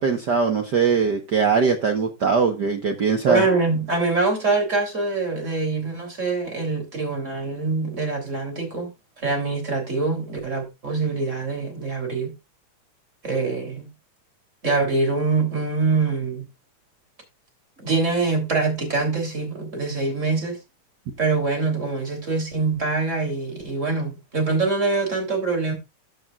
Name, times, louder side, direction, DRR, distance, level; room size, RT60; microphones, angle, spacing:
voice 1, 0.0-3.5, right 5 dB, 85° right, 0.9 m, -21 dB
voice 2, 3.3-8.9 9.2-12.3 13.2-13.9 14.6-16.4 17.8-20.6 21.2-25.7, right 3 dB, 25° right, 3.3 m, -24 dB
13.5 x 6.8 x 2.4 m
omnidirectional pair, 3.4 m